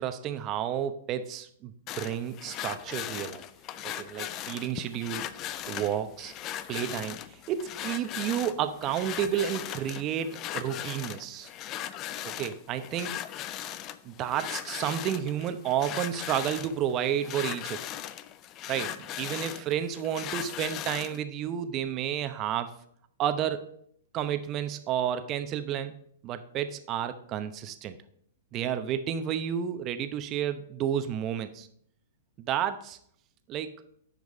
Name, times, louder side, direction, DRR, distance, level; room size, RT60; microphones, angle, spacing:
voice 1, 0.0-3.4 3.8-5.2 5.7-6.3 6.7-11.5 12.2-13.1 14.0-17.9 18.7-22.7 23.2-23.7 24.1-26.0 26.2-28.0 28.5-31.7 32.4-33.0 33.5-33.8, right 9 dB, 35° right, 10 dB, 0.8 m, -31 dB
sound 1, 1.9-21.2, left 12 dB, 35° left, 0.4 m, -38 dB
9.7 x 5.2 x 5.0 m, 0.66 s
hypercardioid pair, 115°, 0 cm